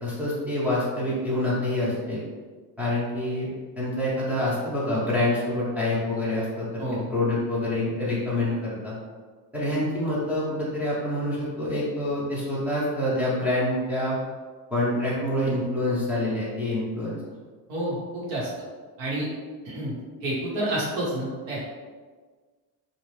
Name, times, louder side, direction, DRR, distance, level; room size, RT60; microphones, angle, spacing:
voice 1, 0.0-2.2 2.8-3.5 3.8-8.9 9.5-14.2 14.7-17.2, left 1 dB, 5° right, -9 dB, 0.6 m, -26 dB
voice 2, 17.7-18.5 19.0-19.3 19.6-19.9 20.2-21.6, right 1 dB, 70° right, -6 dB, 1.2 m, -29 dB
2.9 x 2.4 x 3.1 m, 1.5 s
cardioid pair, 170°, 36 cm